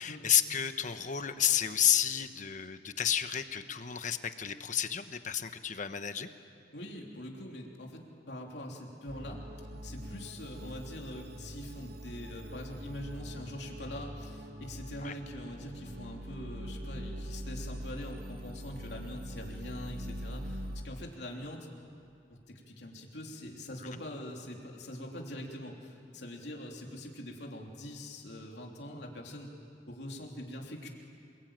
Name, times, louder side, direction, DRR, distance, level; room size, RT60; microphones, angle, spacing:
voice 1, 0.0-6.3 15.0-15.1 23.9-24.0, left 9 dB, 45° left, 9 dB, 1.2 m, -31 dB
voice 2, 6.7-9.4 9.8-21.7 22.3-29.5 29.9-30.9, left 1 dB, 70° left, 0 dB, 3.4 m, -43 dB
sound 1, 9.1-20.8, equal, 60° right, 1.7 m, -43 dB
27.5 x 21.5 x 9.0 m, 2.4 s
head